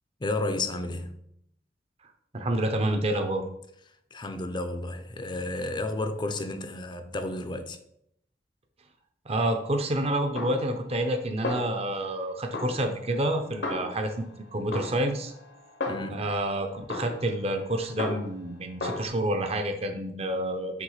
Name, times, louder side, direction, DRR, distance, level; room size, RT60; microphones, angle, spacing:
voice 1, 0.2-1.2 4.1-7.8 15.9-16.3, left 2 dB, 25° left, 0.5 m, -32 dB
voice 2, 2.3-3.4 9.2-15.3 16.1-20.8, right 1 dB, 35° right, 0.7 m, -28 dB
Snare drum, 10.4-11.2 11.4-12.2 12.5-14.3 14.7-16.4 16.9-18.5 18.8-19.1, left 2 dB, 75° left, 1.0 m, -35 dB
6.0 x 3.0 x 5.6 m
head